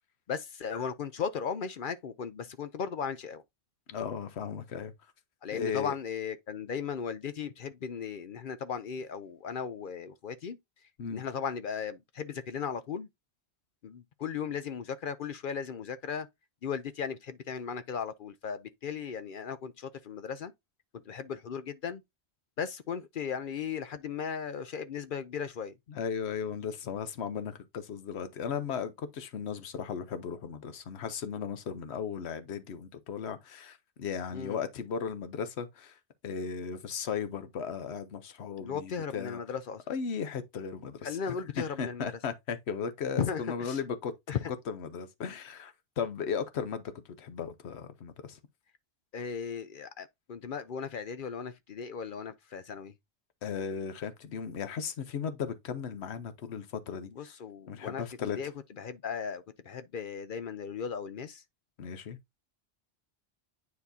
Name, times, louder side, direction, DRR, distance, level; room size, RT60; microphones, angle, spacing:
voice 1, 0.3-3.4 5.4-10.6 11.1-13.1 13.8-16.3 16.6-20.5 20.9-22.0 22.6-25.8 34.3-34.6 38.6-39.8 41.0-42.1 43.2-43.8 44.3-44.5 49.1-52.9 57.1-58.0 58.3-58.5 58.8-61.4, left 7 dB, 55° left, 0.7 m, -36 dB
voice 2, 3.9-4.9 5.5-6.0 11.0-11.2 25.9-36.0 36.2-39.4 39.9-44.1 44.7-46.9 47.2-48.4 53.4-57.3 57.7-58.4 61.8-62.2, left 6 dB, 75° left, 1.1 m, -36 dB
9.6 x 4.2 x 2.7 m
omnidirectional pair, 1.1 m